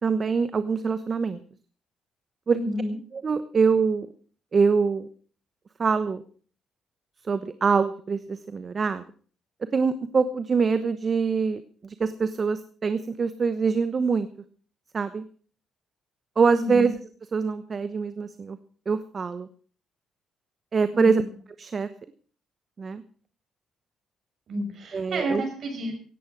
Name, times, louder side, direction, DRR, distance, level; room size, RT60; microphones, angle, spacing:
voice 1, 0.0-1.4 2.5-2.6 3.1-4.1 4.5-5.1 5.8-6.2 7.3-9.0 9.7-14.3 14.9-15.2 16.4-17.0 17.3-18.6 18.9-19.5 20.7-21.2 21.6-21.9 22.8-23.0 24.9-25.4, right 5 dB, 40° right, 12 dB, 1.0 m, -24 dB
voice 2, 2.5-3.0 16.5-16.9 20.9-21.3 24.5-25.9, right 1 dB, 60° right, 4 dB, 6.9 m, -30 dB
17.0 x 10.0 x 6.1 m, 0.43 s
cardioid pair, 90°, 0 cm